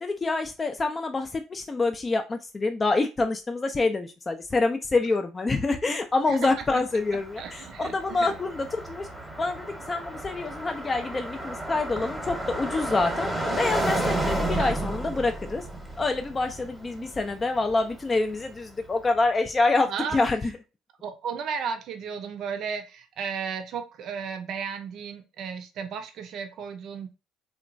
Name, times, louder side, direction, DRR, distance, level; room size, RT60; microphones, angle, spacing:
voice 1, 0.0-9.1 9.4-13.3 13.6-15.7 16.0-20.5, left 3 dB, 30° left, 5 dB, 0.3 m, -26 dB
voice 2, 6.3-6.8 7.4-8.3 14.6-14.7 17.0-17.1 19.9-20.2 21.0-27.1, right 6 dB, 65° right, 6 dB, 0.4 m, -34 dB
Car passing by, 6.5-18.5, right 1 dB, 5° right, 0.9 m, -32 dB
2.9 x 2.2 x 2.5 m, 0.29 s
supercardioid pair, 75°, 0 cm